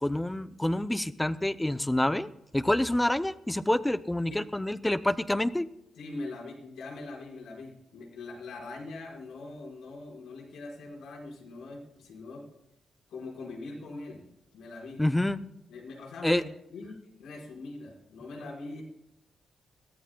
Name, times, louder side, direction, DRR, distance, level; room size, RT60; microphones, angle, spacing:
voice 1, 0.0-5.7 15.0-15.4 16.2-16.4, left 1 dB, 5° left, 13 dB, 0.5 m, -27 dB
voice 2, 6.0-12.5 13.1-14.2 14.5-15.0 15.7-16.4 16.7-18.8, left 3 dB, 85° left, -1 dB, 4.7 m, -42 dB
22.0 x 17.5 x 2.2 m, 0.84 s
wide cardioid pair, 180°, 0 cm